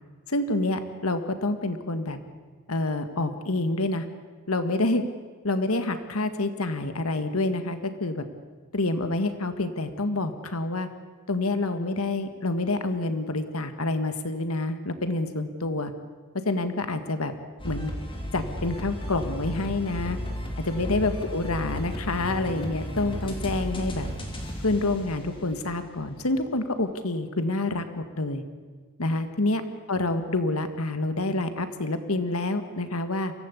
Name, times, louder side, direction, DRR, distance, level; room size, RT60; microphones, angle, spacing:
voice 1, 0.3-2.2 2.7-4.1 4.5-5.0 5.4-8.2 8.7-10.9 11.3-15.9 16.5-17.3 17.6-17.9 18.3-20.2 20.6-24.1 24.6-28.4 29.0-29.6 29.9-33.3, left 2 dB, 85° left, 9 dB, 1.8 m, -27 dB
sound 1, 17.6-26.0, equal, 25° left, 3.0 m, -34 dB
23.5 x 16.5 x 8.4 m, 1.5 s
head